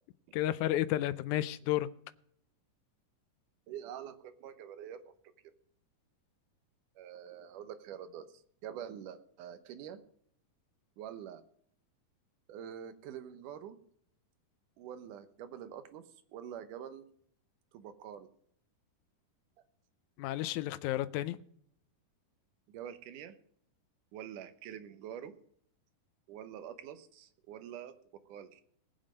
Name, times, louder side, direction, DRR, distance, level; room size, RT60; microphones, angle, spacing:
voice 1, 0.3-1.9 20.2-21.4, left 14 dB, 75° left, 14 dB, 1.9 m, -32 dB
voice 2, 3.7-5.0 7.0-10.0 11.0-11.4 12.5-13.8 14.8-16.0 16.3-17.0 17.7-18.3 22.7-23.4 24.1-25.3 26.3-27.9 28.3-28.6, right 9 dB, 75° right, 9 dB, 2.5 m, -46 dB
19.5 x 7.6 x 5.2 m, 0.65 s
omnidirectional pair, 3.8 m